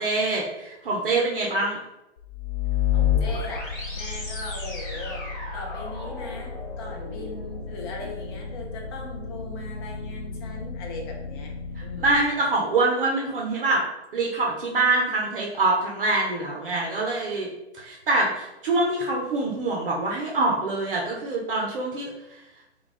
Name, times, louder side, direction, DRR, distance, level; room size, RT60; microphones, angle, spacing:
voice 1, 0.0-1.8 11.8-13.8 14.1-17.5 17.8-22.1, right 2 dB, 55° right, -2 dB, 0.6 m, -25 dB
Possible Warp, 2.2-12.2, left 7 dB, 45° left, 0.9 m, -31 dB
voice 2, 2.9-5.2 5.5-11.5 11.8-12.3, left 2 dB, 25° left, -1 dB, 0.5 m, -39 dB
2.3 x 2.3 x 3.9 m, 0.95 s
figure-of-eight pair, 120°, 34 cm